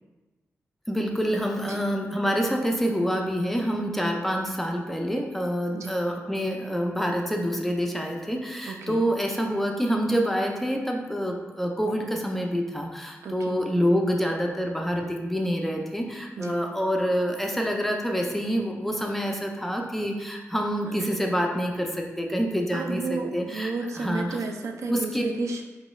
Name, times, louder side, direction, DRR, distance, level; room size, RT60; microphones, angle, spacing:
voice 1, 0.9-24.4 24.9-25.3, equal, 5° left, 1 dB, 0.4 m, -27 dB
voice 2, 8.7-9.1 13.2-13.6 16.4-16.6 20.9-21.1 22.7-25.6, right 4 dB, 75° right, 4 dB, 0.4 m, -33 dB
4.6 x 2.2 x 3.0 m, 1.2 s
wide cardioid pair, 145°, 5 cm